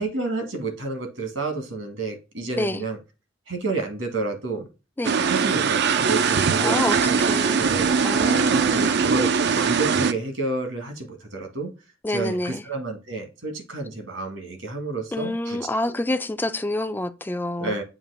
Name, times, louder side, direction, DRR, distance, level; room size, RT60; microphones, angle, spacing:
voice 1, 0.0-3.0 3.5-4.7 5.2-7.9 8.8-11.7 12.1-15.6 17.6-17.8, right 3 dB, 75° right, 2.0 m, -30 dB
sound 1, 5.0-10.1, right 5 dB, 60° right, 0.5 m, -21 dB
voice 2, 6.6-7.6 8.0-8.9 12.0-12.6 15.1-17.8, left 1 dB, 10° left, 0.4 m, -27 dB
7.3 x 3.0 x 4.9 m
head